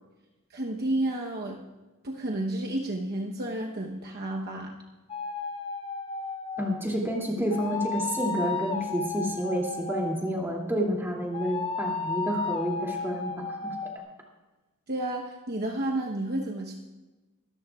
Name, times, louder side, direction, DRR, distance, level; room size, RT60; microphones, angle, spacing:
voice 1, 0.5-1.6 2.0-4.7 14.9-16.7, right 1 dB, 45° right, 0 dB, 1.0 m, -31 dB
sound 1, 5.1-6.8 7.5-10.4 11.3-14.0, left 4 dB, 25° left, 0.8 m, -33 dB
voice 2, 6.6-13.3 13.6-13.7, equal, 10° right, -2 dB, 2.6 m, -29 dB
23.5 x 13.5 x 2.4 m, 1.2 s
head